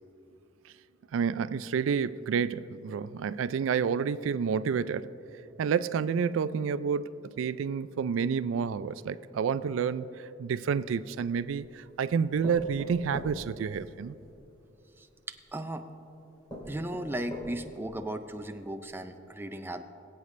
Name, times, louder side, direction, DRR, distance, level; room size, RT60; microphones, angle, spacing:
voice 1, 1.1-5.1 5.6-14.1, right 6 dB, 80° right, 15 dB, 0.3 m, -29 dB
sound 1, 10.8-11.6 12.4-14.4 15.4-15.5 16.0-16.1 16.5-17.8 18.3-18.4 18.8-18.9, equal, 25° left, 2.7 m, -43 dB
voice 2, 15.0-15.8 16.7-19.8, right 1 dB, 10° right, 7 dB, 0.4 m, -36 dB
21.5 x 8.1 x 3.2 m, 2.9 s
head